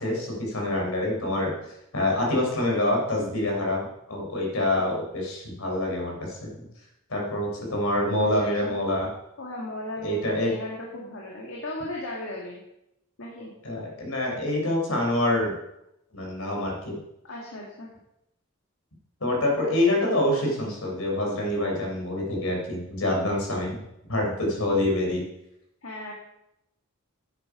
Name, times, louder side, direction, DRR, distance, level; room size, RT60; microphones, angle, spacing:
voice 1, 0.0-1.5 1.9-3.8 4.1-6.5 7.1-9.1 10.0-10.5 13.6-15.5 16.1-17.0 19.2-23.8 24.1-25.2, left 1 dB, 85° left, 0 dB, 3.9 m, -26 dB
voice 2, 8.2-8.8 9.4-12.6 13.2-13.5 17.3-17.9 25.8-26.1, left 1 dB, 65° left, -2 dB, 1.9 m, -36 dB
9.7 x 8.5 x 4.9 m, 0.83 s
head